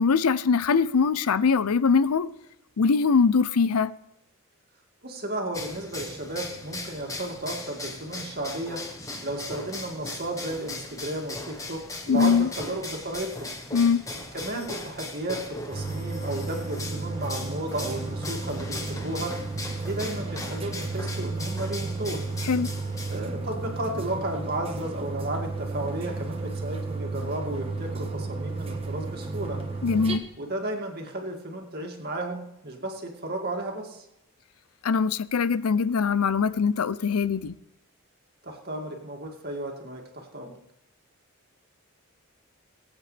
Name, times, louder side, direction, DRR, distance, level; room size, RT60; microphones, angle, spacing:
voice 1, 0.0-2.3 2.8-3.9 12.1-12.5 13.7-14.0 22.4-22.7 29.8-30.2 34.8-37.5, left 5 dB, 90° left, 0.5 m, -22 dB
voice 2, 5.0-8.8 9.2-13.5 14.3-19.3 19.8-22.2 23.1-29.6 30.4-34.0 38.4-40.6, right 1 dB, 45° right, 2.3 m, -33 dB
sound 1, 5.5-23.2, left 2 dB, 15° left, 1.2 m, -38 dB
sound 2, 15.7-30.2, right 3 dB, 25° right, 1.3 m, -33 dB
22.0 x 8.9 x 3.4 m
head